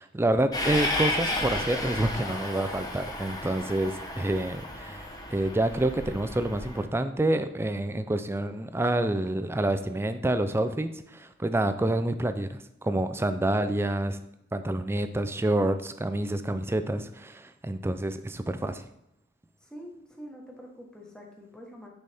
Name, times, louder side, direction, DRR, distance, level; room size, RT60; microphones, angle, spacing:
voice 1, 0.0-5.0 5.3-14.2 14.5-18.9, right 1 dB, 10° right, 10 dB, 0.4 m, -28 dB
Train, 0.5-6.8, left 1 dB, 20° left, 0.8 m, -33 dB
voice 2, 19.6-21.9, equal, 5° left, -1 dB, 1.2 m, -45 dB
9.7 x 4.2 x 3.4 m, 0.83 s
head